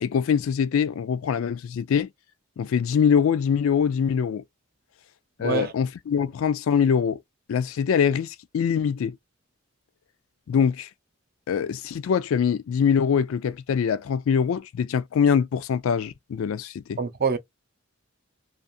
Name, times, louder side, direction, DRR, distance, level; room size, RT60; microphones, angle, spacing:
voice 1, 0.0-2.1 2.6-4.4 5.4-7.2 7.5-9.2 10.5-10.9 11.5-17.0, left 7 dB, 70° left, 0.3 m, -23 dB
voice 2, 5.4-5.7 17.0-17.4, right 5 dB, 45° right, 0.5 m, -25 dB
2.4 x 2.4 x 2.6 m
head